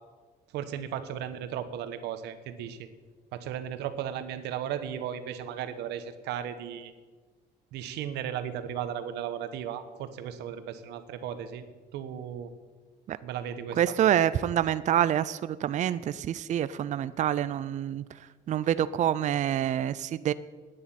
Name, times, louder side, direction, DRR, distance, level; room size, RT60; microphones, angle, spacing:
voice 1, 0.5-2.9 3.3-6.9 7.7-11.6 11.9-12.5 13.2-13.9, right 9 dB, 85° right, 10 dB, 1.2 m, -35 dB
voice 2, 13.8-18.0 18.5-20.3, right 10 dB, 45° right, 15 dB, 0.5 m, -27 dB
10.0 x 9.9 x 8.8 m, 1.4 s
cardioid pair, 110°, 17 cm